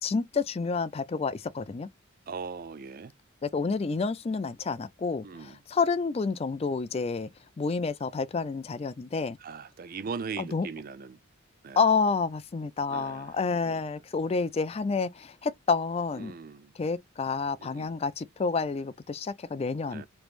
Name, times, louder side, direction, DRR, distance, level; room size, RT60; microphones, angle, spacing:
voice 1, 0.0-1.9 3.4-7.3 7.6-9.4 10.4-10.7 11.8-16.3 16.8-20.0, left 4 dB, 30° left, 0.3 m, -29 dB
voice 2, 2.3-3.1 5.2-5.6 9.4-11.2 11.6-11.8 12.9-13.3 13.6-13.8 16.2-16.7 17.6-17.9 19.9-20.1, right 5 dB, 45° right, 0.4 m, -39 dB
3.4 x 3.1 x 2.4 m
head